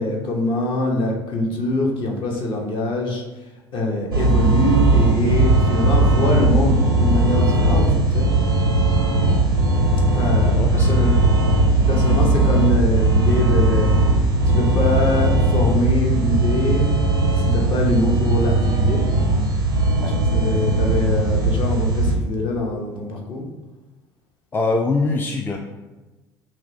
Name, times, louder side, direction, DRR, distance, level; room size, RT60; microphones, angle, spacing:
voice 1, 0.0-3.2 3.7-7.9 8.1-8.3 10.1-11.1 11.9-13.9 14.5-16.9 17.4-19.0 20.2-23.4, left 1 dB, 45° left, 0 dB, 0.9 m, -23 dB
sound 1, 4.1-22.2, right 2 dB, 85° right, 0.5 m, -18 dB
voice 2, 10.6-10.9 20.0-20.1 24.5-25.6, left 3 dB, 15° left, 3 dB, 0.3 m, -23 dB
5.7 x 2.1 x 2.7 m, 1.2 s
figure-of-eight pair, 60°, 12 cm